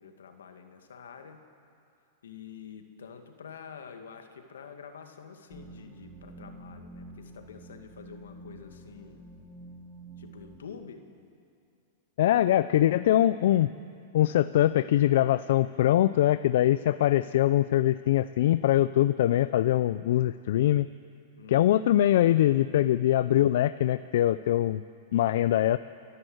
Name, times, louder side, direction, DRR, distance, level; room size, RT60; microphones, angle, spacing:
voice 1, 0.0-1.4 2.2-9.3 10.2-11.1 21.4-21.7, left 6 dB, 90° left, 6 dB, 2.1 m, -47 dB
sound 1, 5.5-10.6, right 2 dB, 5° left, 7.2 m, -48 dB
voice 2, 12.2-13.7 14.1-20.9 21.5-24.8 25.1-25.8, left 13 dB, 70° left, 14 dB, 0.4 m, -23 dB
29.5 x 11.0 x 7.9 m, 2.5 s
hypercardioid pair, 120°, 0 cm